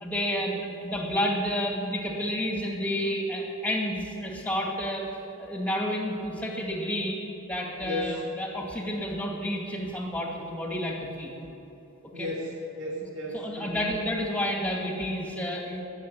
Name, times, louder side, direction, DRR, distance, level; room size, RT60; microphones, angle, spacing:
voice 1, 0.0-5.0 5.4-7.2 7.5-11.3 12.2-12.3 13.3-15.8, equal, 5° left, -1 dB, 2.1 m, -30 dB
voice 2, 7.8-8.2 12.1-13.9, left 1 dB, 60° right, -4 dB, 2.5 m, -34 dB
18.5 x 6.9 x 9.4 m, 3.0 s
head